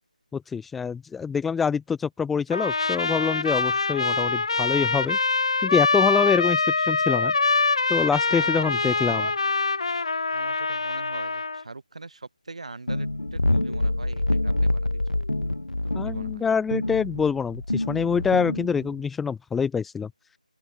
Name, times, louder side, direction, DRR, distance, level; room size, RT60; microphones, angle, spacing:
voice 1, 0.3-5.2 5.6-7.3 7.9-9.3 15.9-20.1, left 6 dB, ahead, 0.5 m, -25 dB
Trumpet, 2.5-11.6, left 4 dB, 40° left, 0.8 m, -24 dB
voice 2, 8.3-9.5 10.3-15.3 15.8-16.4, right 3 dB, 50° right, 4.4 m, -42 dB
sound 1, 12.9-19.1, left 2 dB, 70° left, 2.3 m, -26 dB
open air
figure-of-eight pair, 165°, 4 cm